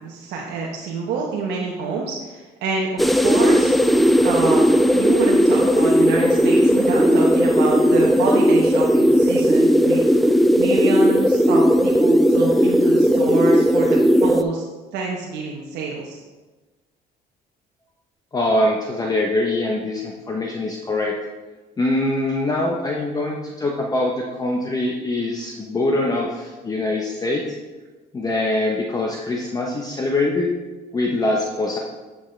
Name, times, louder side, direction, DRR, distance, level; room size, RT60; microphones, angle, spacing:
voice 1, 0.0-3.7 4.2-10.0 10.6-14.6 14.9-16.2, right 4 dB, 85° right, -2 dB, 0.9 m, -27 dB
sound 1, 3.0-14.4, equal, ahead, 0.3 m, -16 dB
voice 2, 18.3-21.2 21.8-27.5 28.1-30.5 30.9-31.8, left 2 dB, 20° left, 0 dB, 0.8 m, -23 dB
8.9 x 6.1 x 3.2 m, 1.2 s
cardioid pair, 110°, 17 cm